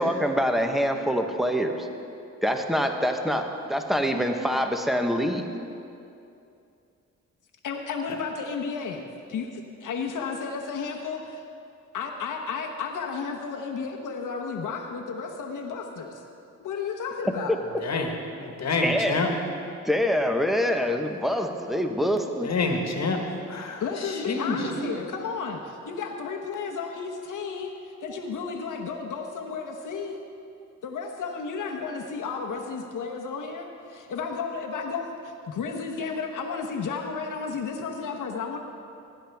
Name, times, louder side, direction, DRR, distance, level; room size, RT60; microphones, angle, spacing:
voice 1, 0.0-1.9 2.4-5.5 18.8-19.3 19.9-22.5 28.1-28.2, equal, ahead, 5 dB, 1.0 m, -25 dB
voice 2, 7.6-9.0 9.3-11.4 11.9-16.2 16.6-17.6 23.8-30.2 30.8-38.6, left 5 dB, 75° left, 2 dB, 1.0 m, -33 dB
voice 3, 17.8-18.1 18.4-19.3 22.4-23.2 23.5-24.7, left 3 dB, 55° left, 3 dB, 1.5 m, -28 dB
16.0 x 10.5 x 3.5 m, 2.6 s
cardioid pair, 75°, 31 cm